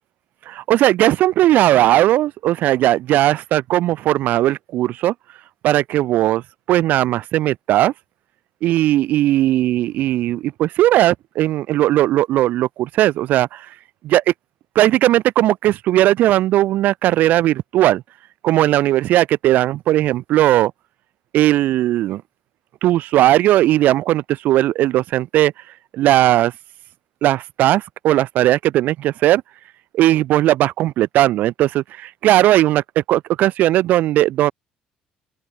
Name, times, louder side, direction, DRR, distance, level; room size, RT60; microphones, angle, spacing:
voice 1, 0.5-5.1 5.6-6.4 6.7-7.9 8.6-13.7 14.0-14.3 14.7-18.0 18.4-20.7 21.3-22.2 22.8-25.5 25.9-26.5 27.2-29.4 29.9-34.5, right 14 dB, 70° right, 7.9 m, -17 dB
open air
supercardioid pair, 80°, 3 cm